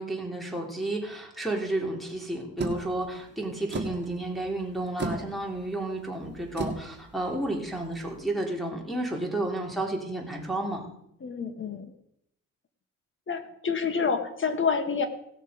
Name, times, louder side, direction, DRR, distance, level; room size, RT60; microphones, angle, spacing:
voice 1, 0.0-10.8, right 1 dB, ahead, 1 dB, 3.4 m, -32 dB
sound 1, 2.6-8.2, right 3 dB, 35° right, 2.2 m, -37 dB
voice 2, 11.2-11.9 13.3-15.1, left 5 dB, 40° left, 8 dB, 1.7 m, -28 dB
17.5 x 6.6 x 5.3 m, 0.77 s
cardioid pair, 90°, 30 cm